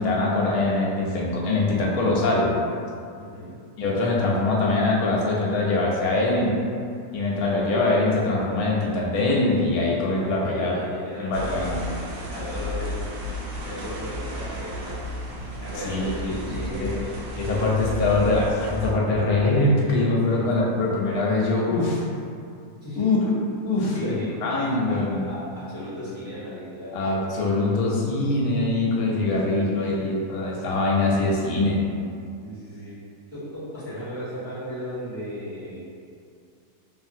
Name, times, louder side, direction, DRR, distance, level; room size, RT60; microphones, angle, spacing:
voice 1, 0.0-2.5 3.8-6.6 7.1-10.8 11.2-11.8 15.8-17.0 17.4-22.0 23.0-23.2 23.6-25.3 26.9-31.9, left 2 dB, 75° left, -3 dB, 1.0 m, -23 dB
voice 2, 3.2-3.5 10.4-11.8 12.3-13.0 13.6-15.0 15.6-17.0 20.0-20.8 22.8-23.3 23.7-24.6 24.9-27.0 29.3-30.1 32.4-32.9 33.3-35.8, equal, 25° right, -14 dB, 1.3 m, -36 dB
sound 1, 11.3-18.9, left 1 dB, 80° right, 1.1 m, -33 dB
2.8 x 2.4 x 2.6 m, 2.4 s
omnidirectional pair, 1.6 m